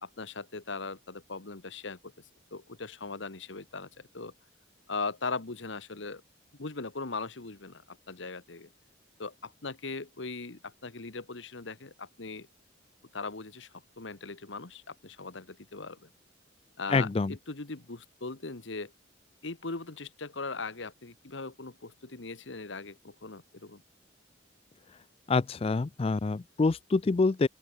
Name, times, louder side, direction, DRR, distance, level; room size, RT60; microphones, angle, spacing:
voice 1, 0.0-2.1 2.5-4.3 4.9-6.2 6.6-8.7 9.2-12.5 13.1-16.1 16.8-18.9 19.4-23.8, left 3 dB, 75° left, 1.4 m, -39 dB
voice 2, 16.9-17.3 25.3-27.5, left 3 dB, 30° left, 0.4 m, -26 dB
open air
head